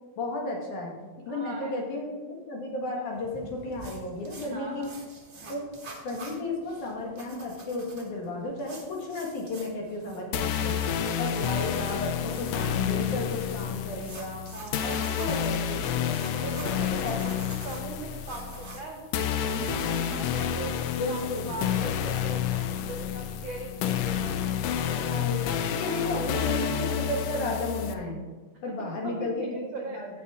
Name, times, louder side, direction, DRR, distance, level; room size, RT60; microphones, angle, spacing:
voice 1, 0.2-1.0 1.3-4.9 5.5-5.7 6.0-10.8 11.2-14.4 14.8-16.4 16.9-17.1 19.5-20.4 20.9-21.6 25.1-25.4 25.7-28.2 28.6-29.6 29.9-30.1, left 2 dB, 70° left, -1 dB, 3.1 m, -33 dB
voice 2, 1.3-1.7 2.9-3.0 4.4-5.0 5.3-5.6 14.5-15.5 16.3-20.8 21.1-24.4 24.8-25.0 25.3-26.3 29.0-30.0, right 3 dB, 70° right, 2 dB, 1.1 m, -41 dB
sound 1, 3.1-20.3, right 3 dB, 85° right, 0.6 m, -48 dB
sound 2, 10.3-27.9, left 9 dB, 85° left, 1.4 m, -29 dB
16.5 x 5.7 x 3.6 m, 1.4 s
omnidirectional pair, 3.7 m